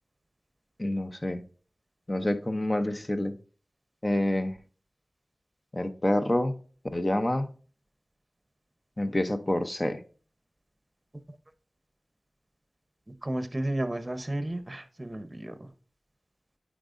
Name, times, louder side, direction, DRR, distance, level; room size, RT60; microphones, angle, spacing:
voice 1, 0.8-1.4 2.1-3.3 4.0-4.6 5.7-6.6 6.9-7.5 9.0-10.0, left 1 dB, 30° left, 8 dB, 0.7 m, -27 dB
voice 2, 13.2-15.7, right 1 dB, 25° right, 11 dB, 0.9 m, -32 dB
8.6 x 5.0 x 2.6 m, 0.39 s
wide cardioid pair, 60°, 0 cm